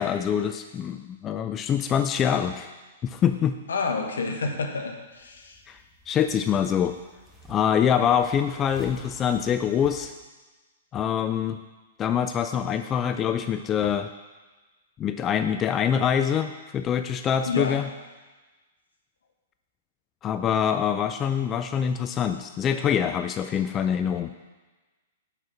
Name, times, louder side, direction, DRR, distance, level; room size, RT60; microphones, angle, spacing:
voice 1, 0.0-2.7 3.0-3.6 5.7-5.8 6.1-7.0 7.5-10.1 10.9-11.6 12.0-14.1 15.0-17.9 20.2-24.3, left 8 dB, 25° left, 9 dB, 0.4 m, -25 dB
voice 2, 3.7-5.6 17.5-17.8, left 4 dB, 80° left, 4 dB, 1.2 m, -29 dB
sound 1, 5.0-10.1, left 2 dB, 5° right, 1.2 m, -50 dB
6.9 x 5.9 x 6.1 m, 1.2 s
hypercardioid pair, 115°, 0 cm